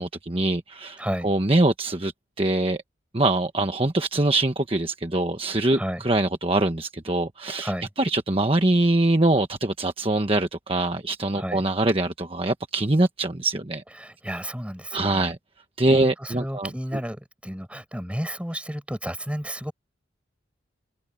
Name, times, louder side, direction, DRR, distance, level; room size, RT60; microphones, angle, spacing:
voice 1, 0.0-2.1 2.4-2.8 3.1-7.7 8.0-13.8 14.9-15.4 15.8-16.7, right 2 dB, 30° right, 1.2 m, -23 dB
voice 2, 1.0-1.3 5.7-6.0 7.6-7.9 11.3-11.6 14.0-15.3 15.9-19.7, equal, 5° right, 6.2 m, -32 dB
head